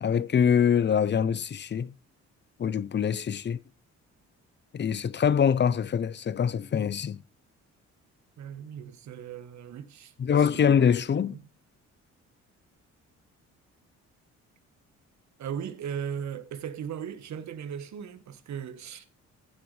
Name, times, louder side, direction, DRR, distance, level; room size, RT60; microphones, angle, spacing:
voice 1, 0.0-1.9 2.6-3.6 4.7-7.2 10.2-11.4, left 7 dB, 35° left, 0.6 m, -24 dB
voice 2, 8.4-10.1 10.5-10.9 11.2-11.5 15.4-19.1, right 8 dB, 65° right, 1.3 m, -37 dB
15.5 x 6.5 x 3.3 m
cardioid pair, 90°, 30 cm